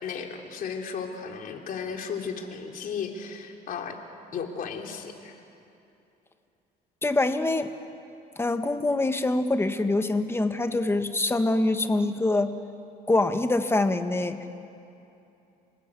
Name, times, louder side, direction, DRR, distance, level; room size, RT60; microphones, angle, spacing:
voice 1, 0.0-4.0 4.3-5.4, left 6 dB, 55° left, 3 dB, 3.2 m, -35 dB
voice 2, 7.0-7.7 8.4-12.5 13.1-14.4, left 2 dB, 15° left, 8 dB, 1.6 m, -24 dB
30.0 x 19.5 x 8.4 m, 2.7 s
cardioid pair, 110°, 17 cm